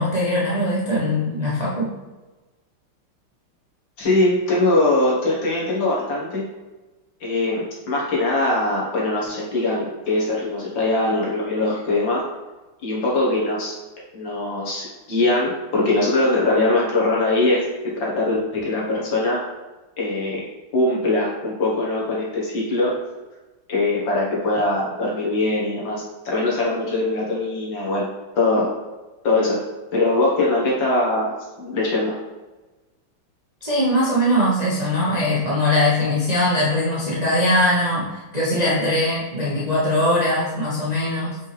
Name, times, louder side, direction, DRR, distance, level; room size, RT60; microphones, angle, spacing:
voice 1, 0.0-1.9 33.6-41.4, left 1 dB, 25° right, -7 dB, 0.9 m, -21 dB
voice 2, 4.0-6.4 7.2-12.2 12.8-13.8 14.1-17.6 18.0-19.4 20.0-20.4 20.7-23.0 23.7-28.1 28.4-28.7 29.2-29.6 29.9-32.2, left 2 dB, 60° left, -4 dB, 2.2 m, -21 dB
5.4 x 5.3 x 3.4 m, 1.2 s
omnidirectional pair, 2.3 m